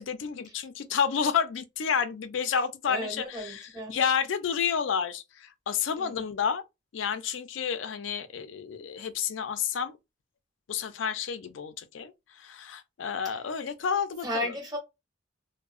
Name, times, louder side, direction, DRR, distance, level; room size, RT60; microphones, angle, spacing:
voice 1, 0.0-6.6 6.9-10.0 10.7-14.5, left 7 dB, 75° left, 0.4 m, -30 dB
voice 2, 2.9-4.0 6.0-6.2 13.2-13.4 14.2-14.8, equal, 20° right, 0.9 m, -34 dB
2.7 x 2.0 x 2.4 m
head